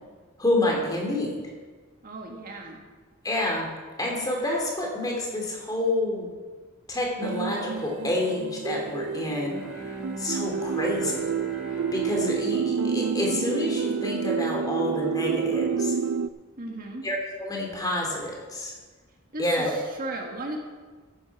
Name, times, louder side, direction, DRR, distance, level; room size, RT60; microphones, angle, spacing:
voice 1, 0.4-1.4 3.2-3.7 4.0-6.3 6.9-9.6 10.2-11.2 11.9-15.9 17.0-18.7 19.4-19.7, left 1 dB, 20° left, -1 dB, 2.9 m, -28 dB
voice 2, 2.0-2.8 16.6-17.0 19.3-20.6, right 2 dB, 40° right, 1 dB, 1.7 m, -36 dB
sound 1, 7.2-16.3, right 6 dB, 85° right, 0.5 m, -29 dB
Bowed string instrument, 9.4-14.3, right 3 dB, ahead, 3.1 m, -40 dB
13.5 x 11.0 x 4.8 m, 1.4 s
head